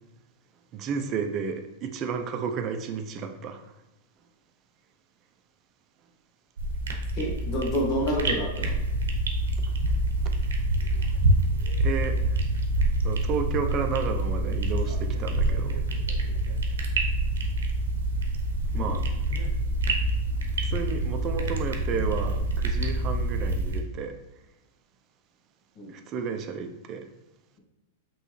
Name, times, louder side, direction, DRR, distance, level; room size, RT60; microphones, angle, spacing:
voice 1, 0.7-3.6 11.8-12.2 13.0-15.8 18.7-19.1 20.7-24.1 25.9-27.1, right 6 dB, 35° right, 6 dB, 0.6 m, -32 dB
sound 1, 6.6-23.8, right 1 dB, 85° right, 0.8 m, -26 dB
voice 2, 7.2-8.7 18.7-19.0 25.7-25.9, equal, 40° left, -2 dB, 1.6 m, -29 dB
5.3 x 3.1 x 3.2 m, 0.96 s
hypercardioid pair, 130°, 0 cm